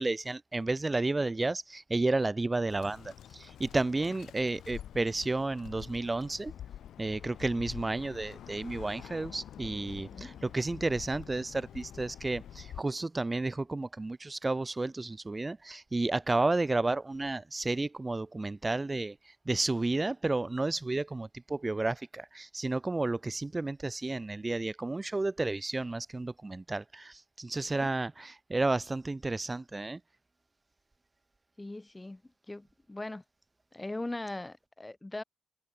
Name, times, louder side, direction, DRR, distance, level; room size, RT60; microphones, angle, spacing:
voice 1, 0.0-6.5 7.0-30.0, right 2 dB, 20° right, 0.4 m, -32 dB
Bird, 2.7-12.8, left 10 dB, 70° left, 4.9 m, -47 dB
voice 2, 31.6-32.2 32.5-33.2 33.7-35.2, left 2 dB, 15° left, 2.9 m, -40 dB
cardioid pair, 90°, 0 cm